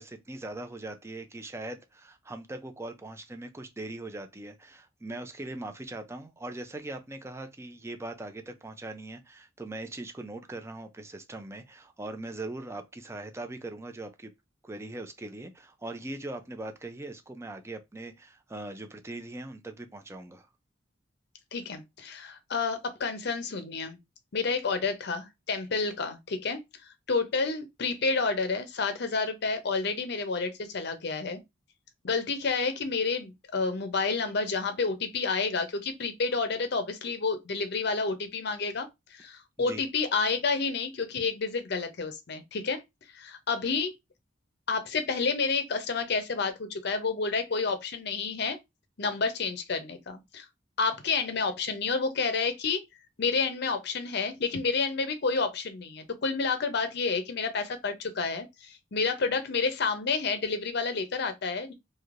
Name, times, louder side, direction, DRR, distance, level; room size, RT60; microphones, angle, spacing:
voice 1, 0.0-14.3 14.6-20.5 39.6-39.8, right 2 dB, 15° right, 0.5 m, -40 dB
voice 2, 21.5-24.0 24.3-26.6 27.1-31.4 32.0-42.8 43.1-43.9 44.7-48.6 49.0-50.5 50.8-52.8 53.2-61.7, left 4 dB, 60° left, 0.6 m, -29 dB
3.2 x 2.7 x 2.5 m
head